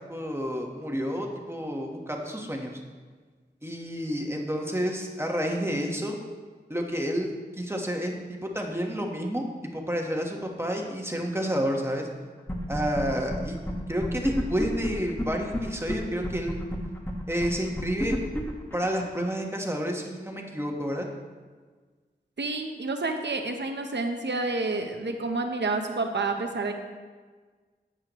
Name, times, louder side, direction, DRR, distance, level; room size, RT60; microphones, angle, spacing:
voice 1, 0.1-2.7 3.6-6.2 6.7-9.4 9.7-12.1 12.7-13.6 13.9-16.6 17.3-18.2 18.7-21.0, equal, 15° right, 1 dB, 1.3 m, -30 dB
sound 1, 12.5-13.0 13.3-13.4 13.7-13.8 14.0-15.6 15.9-16.0 16.2-19.2, equal, 10° left, 1.3 m, -29 dB
voice 2, 22.4-26.7, right 3 dB, 80° right, 5 dB, 0.9 m, -29 dB
11.5 x 8.6 x 3.1 m, 1.5 s
wide cardioid pair, 60°, 18 cm